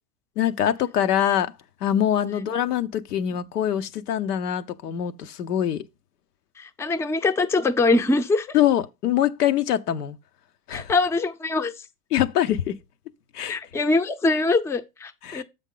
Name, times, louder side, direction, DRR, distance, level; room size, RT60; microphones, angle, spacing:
voice 1, 0.4-1.5 1.8-5.8 8.5-10.2 10.7-10.9 12.1-12.8 13.3-13.6 15.2-15.4, left 10 dB, 90° left, 0.9 m, -24 dB
voice 2, 6.6-8.6 10.7-11.7 13.5-15.4, left 3 dB, 5° left, 0.5 m, -23 dB
7.3 x 5.3 x 3.8 m
hypercardioid pair, 115°, 45 cm